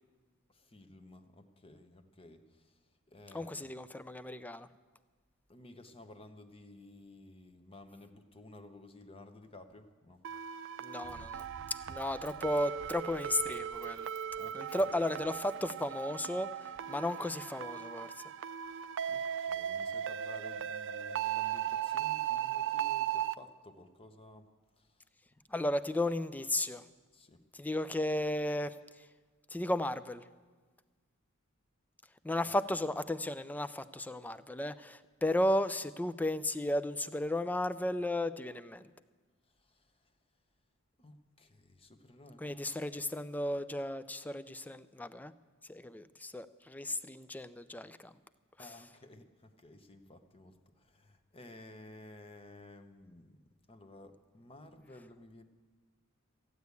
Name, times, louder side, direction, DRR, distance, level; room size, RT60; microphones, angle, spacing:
voice 1, 0.5-2.6 3.1-3.7 5.5-10.2 14.4-14.9 18.6-24.5 24.8-24.9 25.5-25.6 27.1-27.4 32.4-32.5 39.6-39.9 41.0-42.7 48.6-53.4 53.7-55.4, left 2 dB, 25° left, 7 dB, 0.9 m, -54 dB
voice 2, 3.3-4.7 10.8-11.5 11.9-14.1 14.5-18.1 25.5-26.8 27.5-28.8 29.5-30.2 32.2-38.9 42.4-45.3 45.7-48.1, left 1 dB, 10° left, 13 dB, 0.4 m, -34 dB
sound 1, 10.2-23.3, right 9 dB, 60° right, 0.4 m, -37 dB
Run, 11.0-16.3 16.9-17.0, right 3 dB, 85° right, 0.9 m, -56 dB
15.0 x 9.4 x 8.2 m, 1.4 s
head